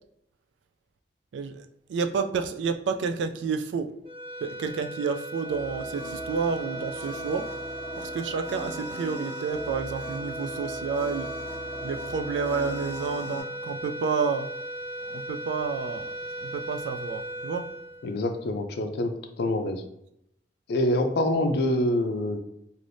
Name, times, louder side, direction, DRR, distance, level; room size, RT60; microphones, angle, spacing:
voice 1, 1.3-1.6 1.9-3.9 4.4-7.5 8.0-11.3 11.8-14.5 15.1-16.1 16.4-17.7, right 5 dB, 90° right, 8 dB, 0.3 m, -30 dB
sound 1, 4.0-18.6, right 1 dB, 30° right, 0.5 m, -37 dB
sound 2, 5.4-13.4, right 1 dB, 10° left, 0.6 m, -40 dB
voice 2, 18.0-19.8 20.7-22.4, left 1 dB, 65° left, 6 dB, 0.4 m, -26 dB
2.6 x 2.5 x 3.3 m, 0.78 s
head